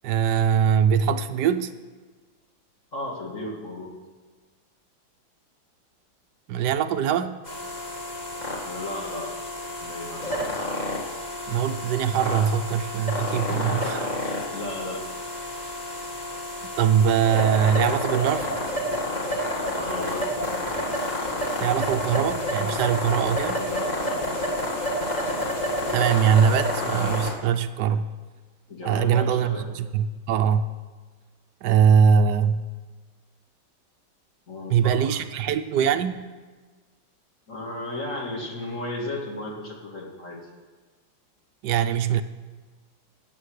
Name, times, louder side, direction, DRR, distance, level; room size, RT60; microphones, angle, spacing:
voice 1, 0.0-1.8 6.5-7.4 11.5-14.0 16.8-18.5 21.6-23.6 25.9-28.1 28.8-30.7 31.6-32.6 34.7-36.3 41.6-42.2, right 7 dB, 70° right, 10 dB, 1.1 m, -22 dB
voice 2, 2.9-3.9 8.6-9.3 9.8-10.4 13.5-15.1 19.7-20.4 23.5-24.5 28.7-29.7 34.5-35.2 37.5-40.4, left 1 dB, 40° left, -2 dB, 2.7 m, -35 dB
sound 1, 7.5-27.3, left 1 dB, 20° left, 1.9 m, -29 dB
15.0 x 8.3 x 6.5 m, 1.4 s
omnidirectional pair, 2.1 m